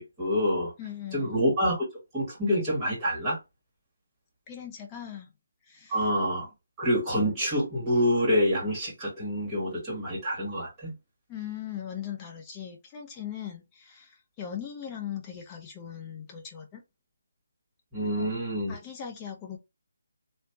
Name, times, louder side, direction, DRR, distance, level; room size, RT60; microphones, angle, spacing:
voice 1, 0.0-0.7 1.1-1.9 2.1-3.4 5.9-6.5 6.8-10.9 17.9-18.8, equal, 15° right, 2.2 m, -27 dB
voice 2, 0.8-1.4 4.5-5.3 5.7-6.1 11.3-16.8 18.2-18.4 18.7-19.6, left 9 dB, 15° left, 0.9 m, -39 dB
3.2 x 2.8 x 2.9 m
figure-of-eight pair, 160°, 0 cm